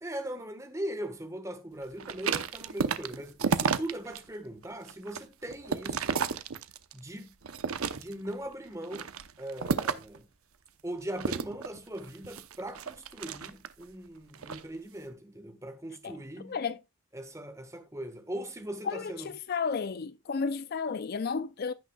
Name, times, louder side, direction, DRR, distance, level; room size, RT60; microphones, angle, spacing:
voice 1, 0.0-6.2 6.9-7.3 7.9-9.1 9.4-10.3 10.8-16.6 17.1-19.3, right 1 dB, 15° right, 1.3 m, -40 dB
sound 1, 2.0-4.2 4.6-7.0 7.4-8.3 8.8-10.2 11.2-13.8 14.3-14.6, right 5 dB, 85° right, 0.8 m, -32 dB
voice 2, 16.5-16.8 18.8-21.7, left 5 dB, 45° left, 0.4 m, -32 dB
16.0 x 6.5 x 2.3 m
head